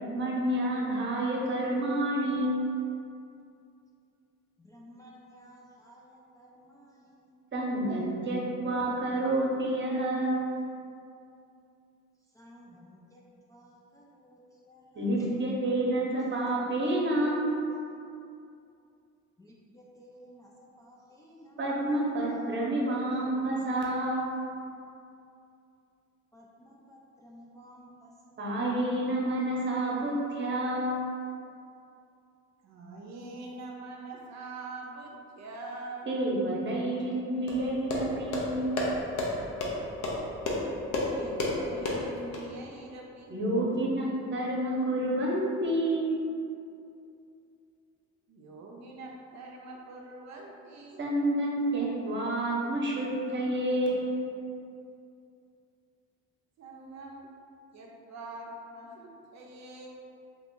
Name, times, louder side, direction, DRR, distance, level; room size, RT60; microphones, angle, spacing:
voice 1, 0.0-2.6 7.5-10.4 14.9-17.6 21.6-24.3 28.4-31.0 36.1-38.6 43.3-46.2 51.0-54.1, right 1 dB, 40° right, -3 dB, 0.8 m, -29 dB
voice 2, 4.6-7.3 12.3-15.3 19.4-22.1 26.3-28.4, equal, 10° left, -4 dB, 0.3 m, -54 dB
voice 3, 32.6-36.1 41.1-43.3 48.3-51.0 56.6-57.3 57.7-59.9, right 2 dB, 60° right, -1 dB, 0.5 m, -44 dB
sound 1, 37.5-42.4, left 2 dB, 70° left, 0.7 m, -32 dB
2.9 x 2.4 x 3.7 m, 2.5 s
cardioid pair, 90°, 30 cm